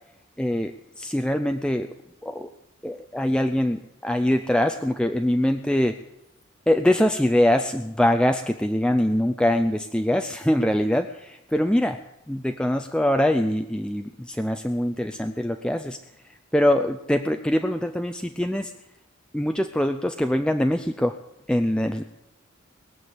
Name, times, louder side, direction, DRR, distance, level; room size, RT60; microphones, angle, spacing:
voice 1, 0.4-1.9 2.2-2.5 2.8-6.0 6.7-12.0 12.3-16.0 16.2-18.7 19.3-21.2 21.5-22.0, left 1 dB, 5° left, 6 dB, 0.4 m, -23 dB
21.0 x 7.0 x 8.0 m, 0.90 s
head